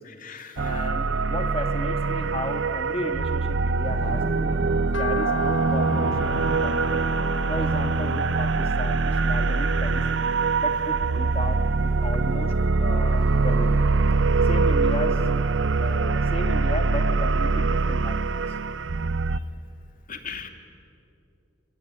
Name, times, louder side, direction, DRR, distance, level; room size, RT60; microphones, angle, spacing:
voice 1, 0.0-0.9 19.3-19.4 20.1-20.5, left 6 dB, 45° left, 6 dB, 2.4 m, -39 dB
voice 2, 0.6-4.6 5.0-7.0 7.5-10.0 10.6-11.7 12.0-12.5 12.8-13.9 14.4-15.2 15.8-18.4, left 1 dB, 30° left, 6 dB, 2.2 m, -34 dB
sound 1, 0.6-19.4, right 4 dB, 75° right, 0.7 m, -23 dB
Thunder, 3.8-10.8 11.9-12.0 13.4-13.7 14.0-14.1 16.1-16.3 17.0-17.4, equal, 35° right, 5.7 m, -39 dB
sound 2, 4.9-11.2 11.6-12.8 13.1-14.5 14.9-15.0 15.5-15.6 15.8-15.9, left 3 dB, 80° left, 1.4 m, -36 dB
28.0 x 20.5 x 9.7 m, 2.7 s
head